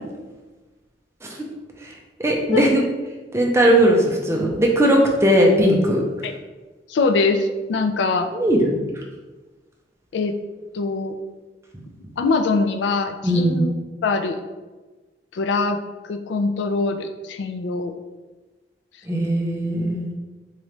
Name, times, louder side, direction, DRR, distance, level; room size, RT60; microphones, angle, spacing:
voice 1, 2.2-2.8 3.3-6.0 8.3-8.8 13.2-13.6 19.1-20.1, equal, 15° right, 0 dB, 0.5 m, -18 dB
voice 2, 6.9-8.3 10.1-10.3 10.7-11.2 12.2-13.7 14.0-14.4 15.3-17.9, left 3 dB, 75° left, 7 dB, 0.3 m, -23 dB
3.7 x 3.1 x 3.2 m, 1.2 s
head